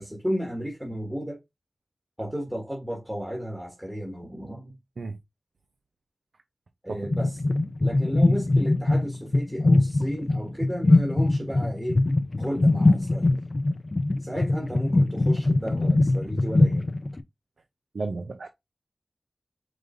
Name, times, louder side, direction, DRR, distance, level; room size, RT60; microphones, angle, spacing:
voice 1, 0.0-1.4 2.2-4.8 6.8-12.0 12.4-13.3 14.2-16.9, equal, 15° right, 1.5 m, -33 dB
sound 1, 7.0-17.2, left 2 dB, 45° left, 0.5 m, -22 dB
voice 2, 17.9-18.5, right 3 dB, 80° right, 0.6 m, -32 dB
4.9 x 3.9 x 2.5 m
wide cardioid pair, 60°, 0 cm